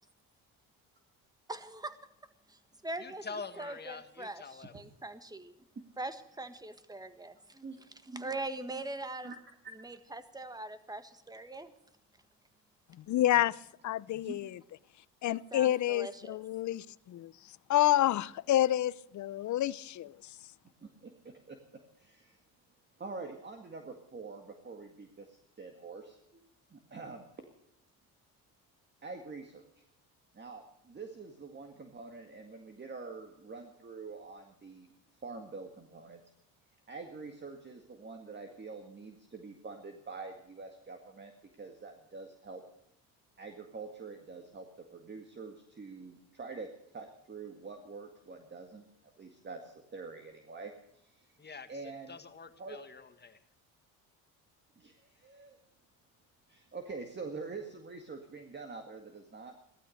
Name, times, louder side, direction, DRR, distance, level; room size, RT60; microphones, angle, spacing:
voice 1, 1.5-1.9 2.8-5.5 6.0-7.6 8.1-9.3 9.8-11.7 15.3-16.4, right 2 dB, 10° right, 1.5 m, -42 dB
voice 2, 3.0-4.7 51.4-51.7 52.1-53.4, left 5 dB, 25° left, 1.7 m, -45 dB
voice 3, 13.1-13.6 13.8-14.6 15.2-17.3 17.7-20.1, left 13 dB, 50° left, 0.6 m, -29 dB
voice 4, 14.1-14.5 20.8-21.6 22.0-22.4 23.0-27.3 29.0-29.8 30.3-34.9 35.2-36.2 36.9-42.6 43.4-44.7 44.9-48.8 49.2-51.3 51.7-52.2 52.6-52.8 54.8-55.6 56.5-59.6, right 4 dB, 30° right, 2.0 m, -46 dB
16.0 x 12.5 x 6.5 m
cardioid pair, 90°, 38 cm